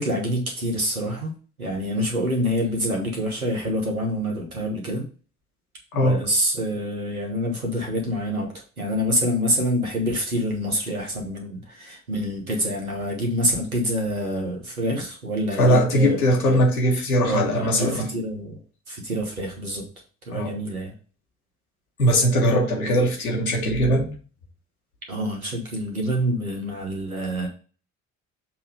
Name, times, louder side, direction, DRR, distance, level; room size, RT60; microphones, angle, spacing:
voice 1, 0.0-1.3 1.6-5.0 5.9-16.2 16.5-16.6 16.9-19.8 20.2-20.9 25.1-27.5, equal, 90° right, 1.3 m, -26 dB
voice 2, 15.6-18.0 20.3-20.5 22.0-24.1, equal, 85° left, 1.3 m, -20 dB
7.1 x 3.1 x 5.0 m
figure-of-eight pair, 50°, 42 cm